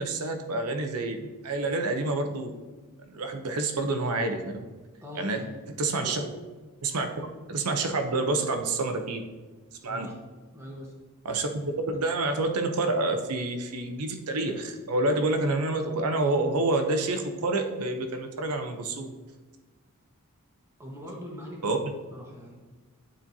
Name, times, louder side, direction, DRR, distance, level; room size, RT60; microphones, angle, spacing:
voice 1, 0.0-2.5 3.0-4.6 5.2-5.4 5.8-6.2 6.8-7.1 7.5-9.2 9.8-10.1 11.2-19.1 21.6-21.8, right 2 dB, 90° right, 6 dB, 0.8 m, -28 dB
voice 2, 5.0-5.6 6.0-6.4 6.9-7.1 9.8-10.1 10.5-10.9 20.8-22.5, equal, 10° right, -2 dB, 1.3 m, -42 dB
9.9 x 4.4 x 2.8 m, 1.3 s
head